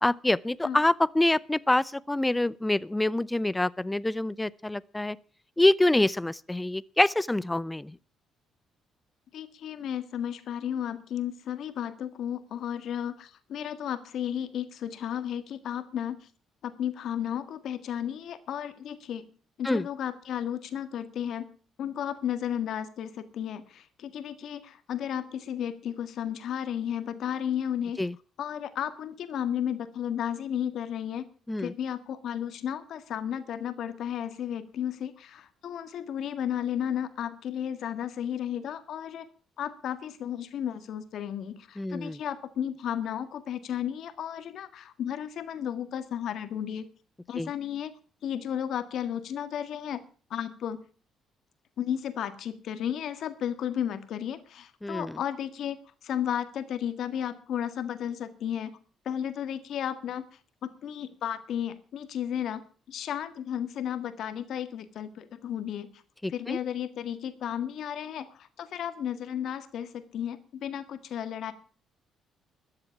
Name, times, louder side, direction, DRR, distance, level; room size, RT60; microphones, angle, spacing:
voice 1, 0.0-5.2 5.6-8.0 19.6-19.9 28.0-28.1 31.5-31.7 41.8-42.2 47.4-47.5 54.8-55.2 66.2-66.6, left 1 dB, 15° left, 0.6 m, -26 dB
voice 2, 9.3-16.3 16.6-19.3 19.6-21.5 21.8-28.0 28.4-31.3 31.6-39.3 39.6-46.9 47.3-47.9 48.2-50.0 50.3-50.8 51.8-58.8 59.0-60.3 60.6-65.9 66.3-71.5, left 9 dB, 70° left, 1.7 m, -33 dB
13.5 x 7.9 x 8.6 m
supercardioid pair, 65°, 0 cm